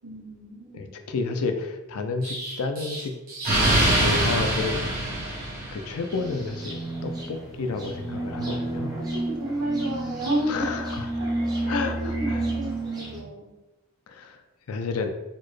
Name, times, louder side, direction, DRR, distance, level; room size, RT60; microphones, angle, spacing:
voice 1, 0.0-0.9 8.4-10.7 11.1-11.3 11.5-13.5, right 1 dB, 90° right, -4 dB, 1.2 m, -32 dB
voice 2, 0.7-3.1 3.9-4.9 5.7-9.0 10.5-11.1 11.7-12.4 14.1-14.4 14.7-15.1, left 4 dB, 80° left, 6 dB, 0.4 m, -30 dB
Explosion, 2.2-6.1, right 1 dB, 40° right, 0.9 m, -24 dB
sound 1, 6.1-13.2, right 2 dB, 15° right, 0.6 m, -31 dB
4.3 x 2.1 x 3.1 m, 1.0 s
head